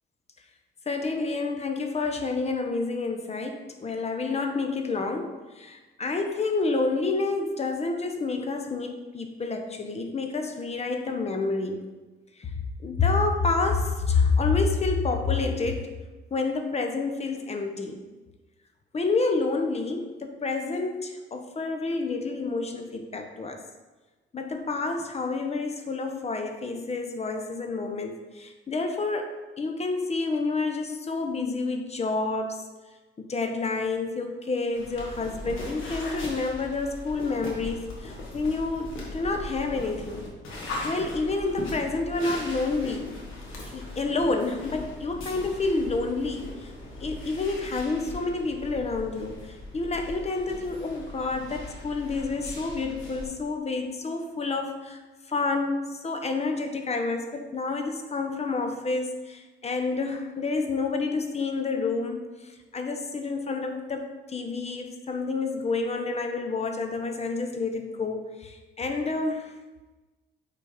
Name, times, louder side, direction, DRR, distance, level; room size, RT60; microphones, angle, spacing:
voice 1, 0.9-11.9 12.4-12.5 12.8-15.9 16.3-18.0 18.9-23.6 24.3-32.7 33.2-40.4 40.8-43.2 43.6-46.7 47.0-55.0 55.3-69.5, left 3 dB, 35° left, 5 dB, 0.8 m, -29 dB
sound 1, 34.7-53.2, left 2 dB, 80° left, 1.5 m, -39 dB
5.2 x 4.2 x 5.0 m, 1.2 s
cardioid pair, 90°, 20 cm